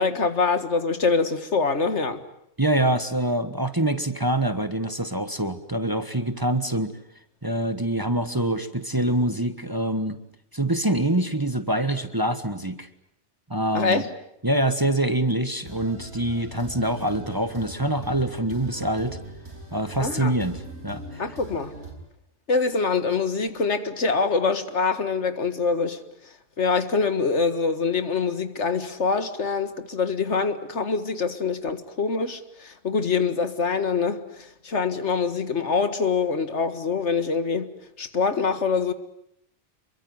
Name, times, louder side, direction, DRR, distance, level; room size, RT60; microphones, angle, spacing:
voice 1, 0.0-2.2 13.7-14.1 20.0-20.3 21.2-21.7 22.5-26.0 26.6-37.7 38.0-38.9, left 4 dB, 70° left, 2.0 m, -24 dB
voice 2, 2.6-7.0 7.4-10.2 10.5-12.9 13.5-14.0 14.4-19.2 19.7-21.2, right 1 dB, 20° right, 1.3 m, -25 dB
sound 1, 15.6-21.9, right 1 dB, 60° right, 7.7 m, -41 dB
27.0 x 23.0 x 9.5 m
omnidirectional pair, 1.2 m